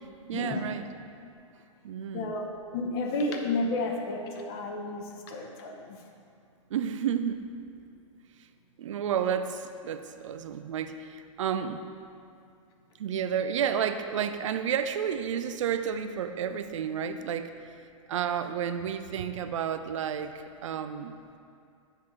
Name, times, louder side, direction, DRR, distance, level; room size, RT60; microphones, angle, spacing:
voice 1, 0.3-0.8 1.8-2.3 6.7-7.5 8.8-11.8 13.0-17.5 18.1-21.2, right 8 dB, 70° right, 9 dB, 0.5 m, -31 dB
voice 2, 2.1-2.5 2.7-6.0, left 2 dB, 50° left, 2 dB, 0.9 m, -31 dB
7.4 x 5.0 x 4.1 m, 2.4 s
hypercardioid pair, 115°, 17 cm